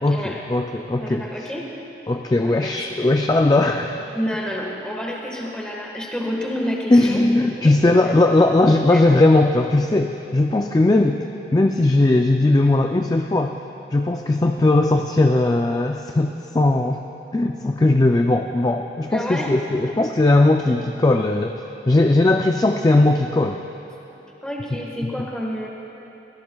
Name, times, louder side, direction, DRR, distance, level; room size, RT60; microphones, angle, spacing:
voice 1, 0.0-1.5 2.1-4.0 6.9-11.2 11.5-13.6 13.9-17.0 17.3-23.6 25.0-25.1, left 2 dB, 20° left, 4 dB, 0.3 m, -18 dB
voice 2, 1.0-1.7 2.4-2.8 4.1-7.3 7.6-7.7 8.0-8.4 8.9-9.0 19.1-19.5 24.4-25.7, equal, 5° left, -2 dB, 1.4 m, -29 dB
22.5 x 16.5 x 2.3 m, 3.0 s
head